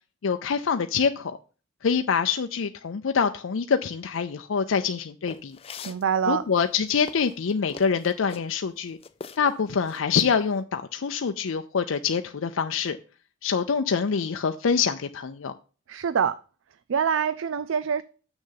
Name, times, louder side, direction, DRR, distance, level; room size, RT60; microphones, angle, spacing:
voice 1, 0.2-1.3 1.8-5.6 6.3-9.0 9.4-13.0 13.4-15.5, left 6 dB, 85° left, 0.5 m, -25 dB
sound 1, 5.3-6.0 6.6-8.5 9.0-9.6 9.8-10.4, left 4 dB, 30° left, 0.5 m, -41 dB
voice 2, 5.8-6.4 15.9-16.4 16.9-18.0, right 7 dB, 80° right, 0.4 m, -25 dB
7.1 x 6.4 x 5.6 m
head